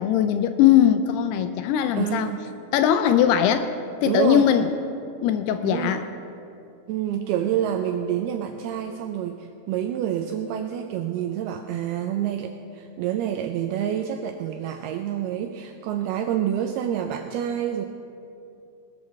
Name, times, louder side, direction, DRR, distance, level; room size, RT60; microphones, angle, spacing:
voice 1, 0.0-2.3 2.7-3.7 4.0-4.8 5.2-6.0, left 10 dB, 85° left, 9 dB, 2.3 m, -20 dB
voice 2, 2.0-2.4 4.1-4.5 5.6-6.0 6.9-17.8, right 10 dB, 85° right, 5 dB, 2.2 m, -27 dB
19.5 x 13.0 x 3.2 m, 2.7 s
omnidirectional pair, 5.1 m